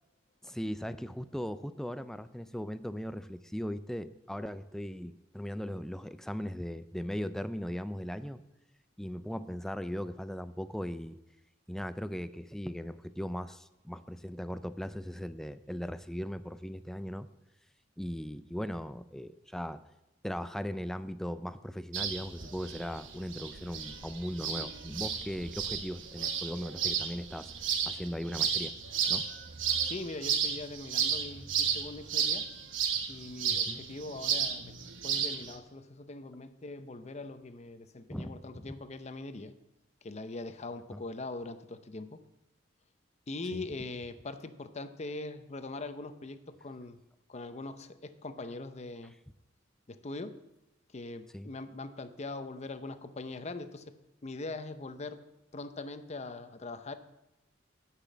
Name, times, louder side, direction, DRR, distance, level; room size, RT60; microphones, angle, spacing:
voice 1, 0.4-8.4 9.0-11.2 11.7-17.3 18.0-19.8 20.2-27.5 27.8-28.7 29.1-29.2 33.5-33.8 38.1-38.7 40.9-41.0 43.5-43.6 51.3-51.5, equal, ahead, 12 dB, 0.4 m, -38 dB
sound 1, 21.9-35.6, right 7 dB, 80° right, 1.1 m, -33 dB
voice 2, 29.8-32.5 33.1-34.7 35.0-39.5 40.0-42.2 43.3-47.0 47.3-49.1 49.9-50.4 50.9-53.9 54.2-55.2 55.5-56.9, left 2 dB, 35° left, 10 dB, 0.6 m, -42 dB
10.0 x 6.0 x 7.2 m, 0.96 s
head